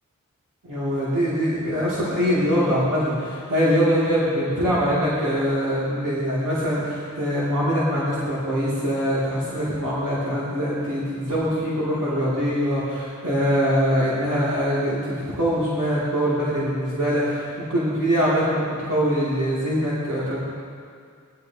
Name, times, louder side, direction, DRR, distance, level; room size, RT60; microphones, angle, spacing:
voice 1, 0.6-20.4, equal, 90° right, -10 dB, 2.5 m, -23 dB
18.0 x 10.5 x 2.9 m, 2.2 s
wide cardioid pair, 50°, 31 cm